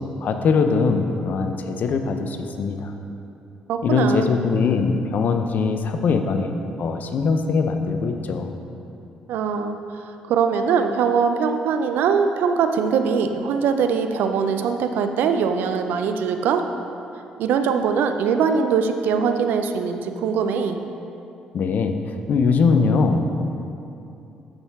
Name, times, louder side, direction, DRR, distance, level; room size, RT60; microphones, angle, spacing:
voice 1, 0.0-2.9 3.8-6.5 6.8-8.5 21.5-23.3, left 4 dB, 60° left, 6 dB, 0.6 m, -21 dB
voice 2, 3.7-4.3 9.3-9.8 10.3-16.6 17.4-20.8, right 6 dB, 70° right, 7 dB, 0.5 m, -22 dB
8.8 x 6.3 x 3.6 m, 2.8 s
hypercardioid pair, 50°, 3 cm